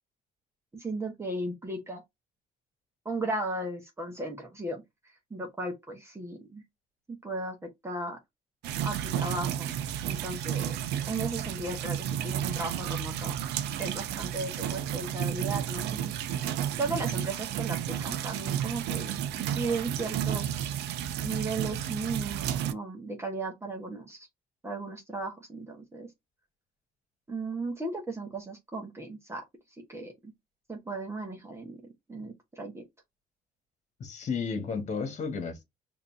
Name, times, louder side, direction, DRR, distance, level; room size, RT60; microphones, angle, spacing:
voice 1, 0.7-2.0 3.0-4.8 5.3-6.6 7.2-8.2 8.8-9.8 10.0-13.4 13.8-16.1 16.8-20.8 21.2-24.3 24.6-26.1 27.3-29.4 29.9-30.3 30.7-31.8 32.1-32.8, right 2 dB, 15° right, 1.1 m, -36 dB
sound 1, 8.6-22.7, right 10 dB, 80° right, 0.6 m, -32 dB
voice 2, 34.0-35.6, left 5 dB, 45° left, 1.5 m, -33 dB
5.1 x 2.8 x 2.7 m
cardioid pair, 110°, 17 cm